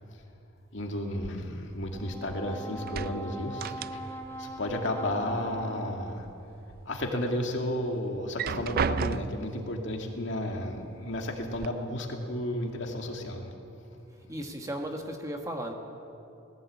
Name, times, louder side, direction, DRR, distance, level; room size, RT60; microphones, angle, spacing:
voice 1, 0.7-6.3 6.9-13.5, left 1 dB, 60° left, 2 dB, 2.3 m, -33 dB
sound 1, 1.2-2.4 2.7-4.4 4.6-5.6 6.0-6.8 7.3-7.4 8.2-9.6 10.5-10.6 11.0-11.7, right 6 dB, 45° right, 0.4 m, -34 dB
Brass instrument, 1.9-6.3, right 1 dB, 10° left, 0.9 m, -41 dB
voice 2, 14.3-15.7, equal, 15° right, 3 dB, 1.4 m, -35 dB
19.0 x 16.0 x 8.4 m, 2.8 s
head